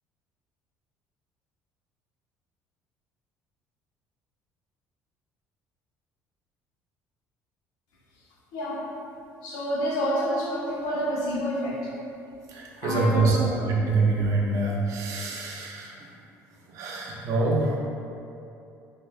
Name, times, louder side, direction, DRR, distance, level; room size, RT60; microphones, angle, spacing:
voice 1, 8.5-8.8 9.4-11.9 12.8-13.5 14.1-14.2, equal, 80° left, -4 dB, 0.7 m, -28 dB
voice 2, 12.5-16.0 16.7-17.8, right 3 dB, 65° right, -2 dB, 0.6 m, -25 dB
4.5 x 2.5 x 2.3 m, 2.7 s
cardioid pair, 130°, 6 cm